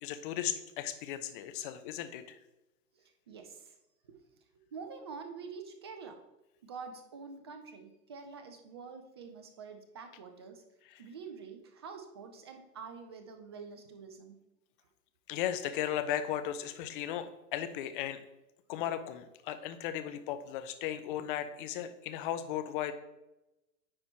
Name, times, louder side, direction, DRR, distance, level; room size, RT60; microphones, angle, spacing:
voice 1, 0.0-2.4 15.3-18.2 18.7-22.9, left 11 dB, 35° left, 10 dB, 0.7 m, -36 dB
voice 2, 2.9-3.8 4.0-4.2 4.7-6.2 6.6-10.6 11.0-14.4, right 5 dB, 20° right, 6 dB, 0.3 m, -47 dB
9.6 x 4.5 x 4.3 m, 0.95 s
hypercardioid pair, 120°, 48 cm